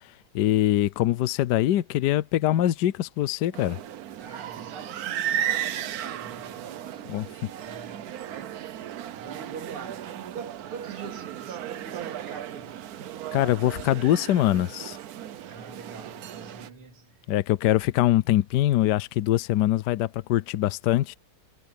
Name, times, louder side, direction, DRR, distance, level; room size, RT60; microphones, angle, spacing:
voice 1, 0.3-3.8 7.1-7.2 13.3-15.0 17.3-21.2, left 13 dB, 70° left, 1.0 m, -23 dB
sound 1, 3.5-16.7, right 11 dB, 65° right, 0.9 m, -35 dB
voice 2, 4.2-8.7 9.1-12.8 15.4-17.3, right 6 dB, 80° right, 3.3 m, -44 dB
omnidirectional pair, 2.4 m